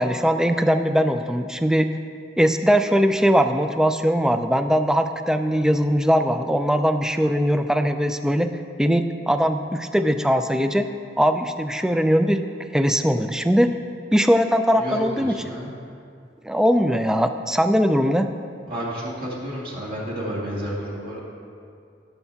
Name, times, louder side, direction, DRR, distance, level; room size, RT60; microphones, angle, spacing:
voice 1, 0.0-1.9 2.4-8.5 8.8-10.9 11.2-12.4 12.7-13.7 14.1-15.3 16.4-18.3, equal, 5° right, 8 dB, 0.3 m, -20 dB
voice 2, 14.8-15.7 18.7-21.2, equal, 55° right, -5 dB, 2.3 m, -31 dB
15.5 x 6.7 x 2.8 m, 2.4 s
head